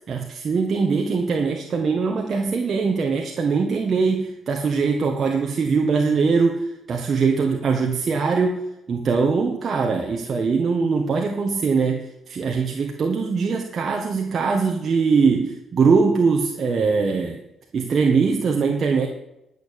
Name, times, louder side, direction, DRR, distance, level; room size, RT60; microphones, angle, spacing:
voice 1, 0.1-8.6 8.9-17.4 17.7-19.1, right 5 dB, 50° right, 2 dB, 1.6 m, -21 dB
11.0 x 6.9 x 8.5 m, 0.84 s
cardioid pair, 90°, 0 cm